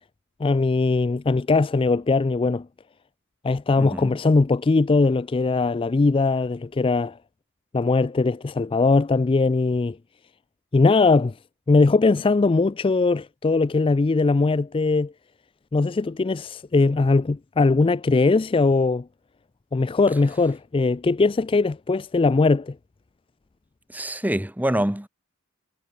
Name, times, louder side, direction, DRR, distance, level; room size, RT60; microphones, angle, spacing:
voice 1, 0.4-2.7 3.4-7.2 7.7-10.0 10.7-11.3 11.7-15.1 15.7-19.1 19.7-22.8, left 3 dB, 25° left, 0.3 m, -20 dB
voice 2, 3.8-4.2 23.9-25.1, right 1 dB, 10° right, 1.2 m, -26 dB
head